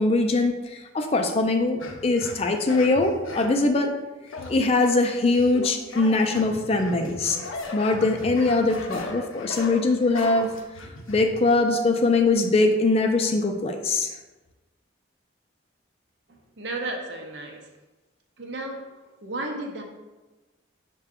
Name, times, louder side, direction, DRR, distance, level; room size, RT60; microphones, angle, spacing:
voice 1, 0.0-3.9 4.5-7.4 7.7-10.5 11.1-14.2, left 3 dB, 30° left, 4 dB, 0.4 m, -22 dB
sound 1, 1.8-3.6 4.3-4.9 5.3-11.4, left 2 dB, 90° left, 0.6 m, -37 dB
voice 2, 16.6-17.6 18.4-18.8 19.2-19.8, right 2 dB, 60° right, 2 dB, 0.6 m, -33 dB
5.8 x 2.2 x 3.6 m, 1.1 s
head